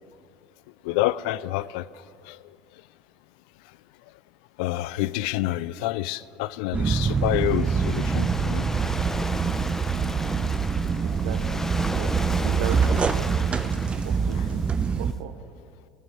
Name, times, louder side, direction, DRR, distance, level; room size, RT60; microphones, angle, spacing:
voice 1, 0.8-1.9 2.2-2.4 4.6-8.7 11.1-11.2, left 16 dB, 75° left, 0.4 m, -28 dB
sound 1, 6.7-15.1, right 6 dB, 25° right, 0.7 m, -25 dB
Waves surf, 6.8-15.1, left 1 dB, 10° left, 0.9 m, -36 dB
voice 2, 11.0-12.1 12.4-13.7 14.3-14.6 15.0-15.3, right 9 dB, 80° right, 0.8 m, -37 dB
15.5 x 9.3 x 9.0 m
hypercardioid pair, 80°, 4 cm